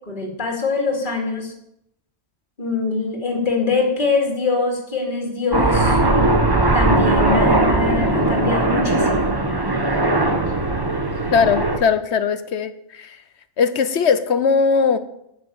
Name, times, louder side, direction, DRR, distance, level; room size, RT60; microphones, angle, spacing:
voice 1, 0.1-1.5 2.6-6.0 6.7-9.3, left 4 dB, 40° left, 0 dB, 2.7 m, -23 dB
Aircraft, 5.5-11.8, right 2 dB, 20° right, 1.1 m, -19 dB
voice 2, 11.3-13.2 13.6-15.0, left 5 dB, 60° left, 12 dB, 1.1 m, -19 dB
12.0 x 6.4 x 8.7 m, 0.79 s
omnidirectional pair, 1.3 m